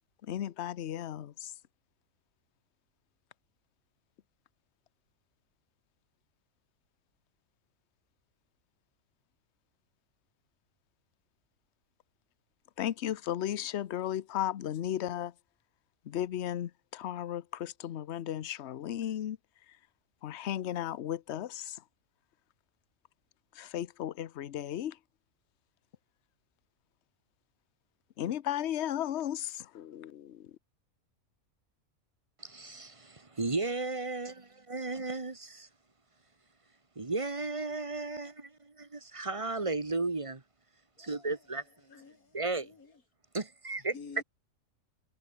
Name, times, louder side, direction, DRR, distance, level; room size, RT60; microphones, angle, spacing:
voice 1, 0.3-1.5 12.8-15.3 16.1-19.4 20.2-21.8 23.5-25.0 28.2-30.5, left 11 dB, 55° left, 1.0 m, -35 dB
voice 2, 32.4-35.4 37.0-40.4 41.0-41.6 42.3-42.7 43.3-43.9, right 3 dB, 20° right, 1.6 m, -34 dB
voice 3, 41.0-41.4 41.9-43.0 43.9-44.2, left 5 dB, 75° left, 2.6 m, -50 dB
omnidirectional pair, 1.5 m